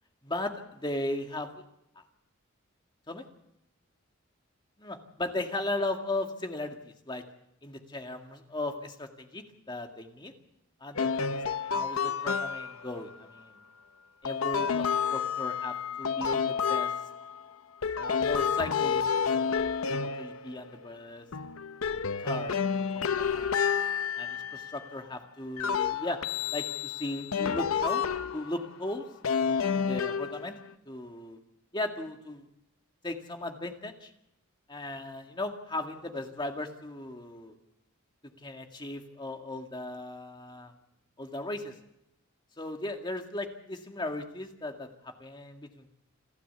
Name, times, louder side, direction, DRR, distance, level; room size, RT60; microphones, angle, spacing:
voice 1, 0.2-1.5 2.0-2.1 3.1-3.3 4.8-7.2 7.6-10.3 10.8-13.6 14.2-16.9 18.0-21.3 22.2-23.5 24.2-26.2 26.5-28.0 28.3-29.0 29.7-30.5 30.9-31.4 31.7-32.5 33.0-34.1 34.7-37.6 38.4-40.7 41.2-41.7 42.6-45.9, left 2 dB, 20° left, 4 dB, 2.1 m, -37 dB
sound 1, 10.9-12.9 14.2-17.4 17.8-20.9 21.3-24.9 25.6-28.7 29.2-30.7, left 6 dB, 75° left, 0.8 m, -30 dB
29.0 x 12.0 x 8.1 m, 0.81 s
head